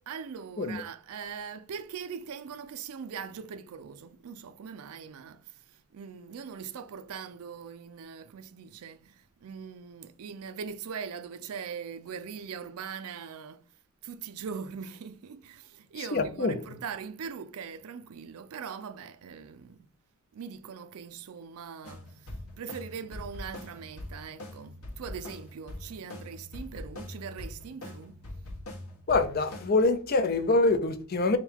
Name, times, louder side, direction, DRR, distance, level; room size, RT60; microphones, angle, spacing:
voice 1, 0.1-13.6 14.0-19.9 20.3-22.3 22.6-28.2, right 6 dB, 80° right, 0.4 m, -41 dB
voice 2, 16.0-16.8 29.1-31.4, left 3 dB, 45° left, 0.4 m, -25 dB
sound 1, 21.8-29.7, left 1 dB, 85° left, 1.2 m, -43 dB
3.7 x 2.3 x 4.3 m
head